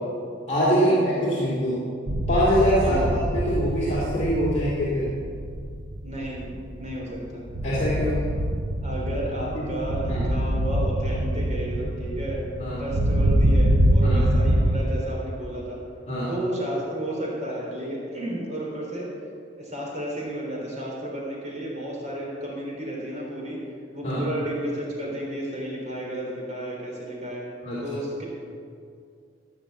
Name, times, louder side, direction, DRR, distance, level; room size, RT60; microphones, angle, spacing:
voice 1, 0.5-1.8 2.3-5.1 7.6-8.2 9.5-9.7 10.1-10.2 12.6-12.8 14.0-14.2 16.1-16.3 24.0-24.3 27.6-27.8, equal, 35° left, -8 dB, 2.7 m, -24 dB
sound 1, 2.1-14.8, right 1 dB, 80° right, 0.9 m, -25 dB
voice 2, 6.0-6.5 6.8-7.4 8.8-12.4 12.8-15.8 16.3-19.1 19.6-23.6 23.9-27.4 27.8-28.2, right 1 dB, 40° right, -4 dB, 3.8 m, -32 dB
15.5 x 5.9 x 7.9 m, 2.3 s
head